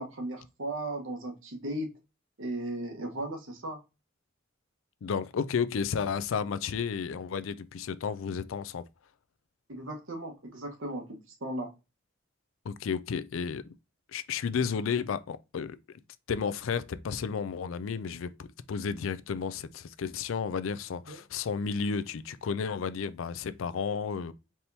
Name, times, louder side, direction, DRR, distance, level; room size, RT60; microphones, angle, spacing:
voice 1, 0.0-1.9 2.4-3.8 9.7-11.7 21.1-21.2, right 1 dB, 85° right, 1.3 m, -36 dB
voice 2, 5.0-8.8 12.6-13.6 14.1-15.8 16.3-24.3, left 6 dB, 90° left, 0.4 m, -32 dB
4.3 x 3.4 x 2.7 m
head